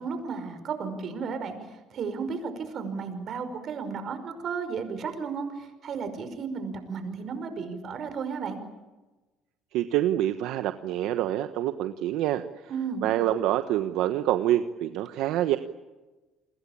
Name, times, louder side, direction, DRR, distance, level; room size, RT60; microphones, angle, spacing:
voice 1, 0.0-8.6 12.7-13.1, right 5 dB, 50° right, 9 dB, 5.4 m, -34 dB
voice 2, 9.7-12.4 13.0-15.6, right 13 dB, 80° right, 9 dB, 1.2 m, -26 dB
30.0 x 21.5 x 8.8 m, 1.2 s
cardioid pair, 100°, 0 cm